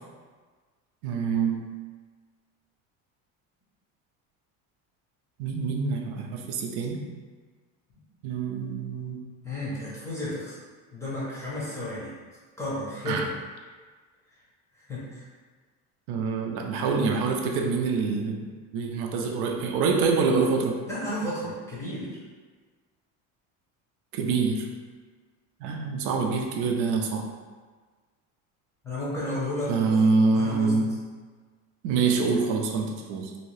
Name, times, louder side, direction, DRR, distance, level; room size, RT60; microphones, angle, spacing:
voice 1, 1.0-1.7 5.4-7.1 8.2-9.2 13.1-13.2 16.1-20.8 24.1-24.7 25.6-27.2 29.7-31.0 31.8-33.3, right 4 dB, 75° right, 1 dB, 0.5 m, -26 dB
voice 2, 9.4-10.6 10.9-12.1 12.6-13.3 14.7-15.3 20.9-22.2 28.8-30.8, left 1 dB, 10° left, -8 dB, 0.6 m, -33 dB
2.8 x 2.7 x 3.1 m, 1.4 s
cardioid pair, 175°, 34 cm